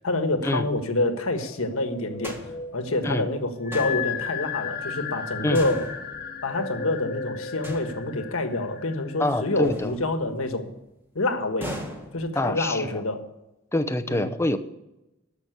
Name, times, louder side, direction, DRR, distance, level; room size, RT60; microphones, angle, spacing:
voice 1, 0.0-2.4 2.7-5.9 6.4-10.7 11.1-11.8 12.1-13.2 14.1-14.3, left 2 dB, 75° left, 7 dB, 1.5 m, -27 dB
sound 1, 1.3-9.7, left 6 dB, 50° left, 1.1 m, -35 dB
sound 2, 2.2-3.1 3.7-4.6 5.5-6.7 7.6-8.6 9.6-10.7 11.6-12.7, equal, 10° right, 1.6 m, -39 dB
voice 2, 9.2-9.9 12.4-13.0 13.7-14.6, left 1 dB, 15° left, 9 dB, 0.6 m, -25 dB
13.5 x 5.9 x 8.1 m, 0.92 s
head